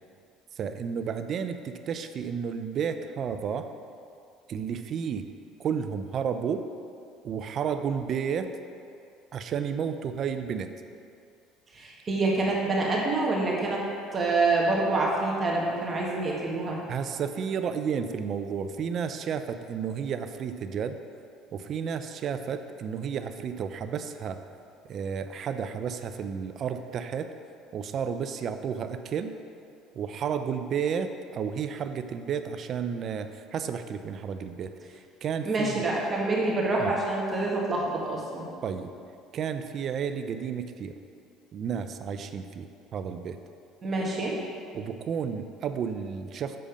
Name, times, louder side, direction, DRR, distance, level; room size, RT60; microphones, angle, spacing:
voice 1, 0.6-3.7 4.5-5.3 5.6-6.6 7.2-8.5 9.3-10.7 16.9-21.0 21.5-24.4 24.9-27.3 27.7-29.3 29.9-35.8 36.8-36.9 38.6-38.9 39.3-40.9 41.5-43.4 44.7-46.6, right 7 dB, 50° right, 9 dB, 0.5 m, -32 dB
voice 2, 11.7-13.8 14.1-16.8 35.4-38.5 43.8-44.4, right 2 dB, 30° right, -3 dB, 1.6 m, -26 dB
7.7 x 6.6 x 5.1 m, 2.4 s
supercardioid pair, 105°, 0 cm